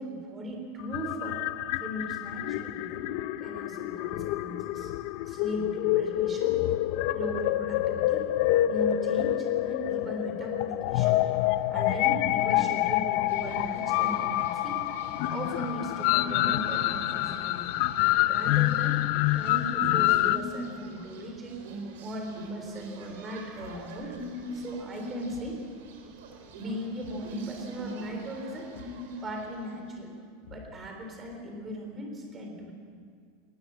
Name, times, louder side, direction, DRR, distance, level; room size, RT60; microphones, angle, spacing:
voice 1, 0.0-1.4 1.8-3.1 3.4-4.9 5.3-6.6 7.1-8.2 8.7-14.8 15.3-17.8 18.3-19.0 19.3-21.6 22.0-24.1 24.5-25.6 26.5-28.8 29.2-30.1 30.5-32.7, right 1 dB, 15° right, 2 dB, 3.9 m, -38 dB
sound 1, 0.8-20.4, left 15 dB, 45° left, 0.6 m, -27 dB
sound 2, 13.3-30.0, equal, 85° right, 4.0 m, -42 dB
Thump thud, 23.6-24.0 25.3-25.6 27.0-27.4 28.7-29.1 30.4-31.0, left 8 dB, 85° left, 4.8 m, -51 dB
21.0 x 19.5 x 8.9 m, 2.1 s
supercardioid pair, 170°, 0 cm